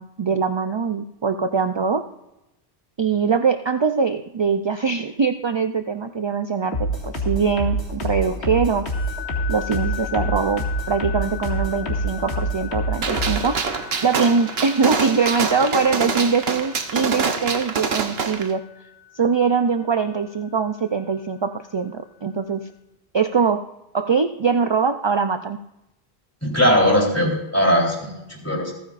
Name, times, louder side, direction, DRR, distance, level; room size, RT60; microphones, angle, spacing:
voice 1, 0.0-2.0 3.0-6.9 7.3-8.9 9.5-13.6 14.0-18.6 19.2-22.7 23.1-23.6 23.9-25.6, right 5 dB, 40° right, 8 dB, 0.4 m, -22 dB
sound 1, 6.7-13.5, right 1 dB, 90° left, 2.3 m, -26 dB
Crotales Bow C-C, 8.9-21.1, left 11 dB, 55° left, 2.0 m, -39 dB
Gunshot gunfire, 13.0-18.5, right 5 dB, 70° right, 1.2 m, -25 dB
voice 2, 26.4-28.7, equal, 15° left, -2 dB, 3.6 m, -19 dB
27.5 x 9.4 x 2.5 m, 0.90 s
omnidirectional pair, 1.1 m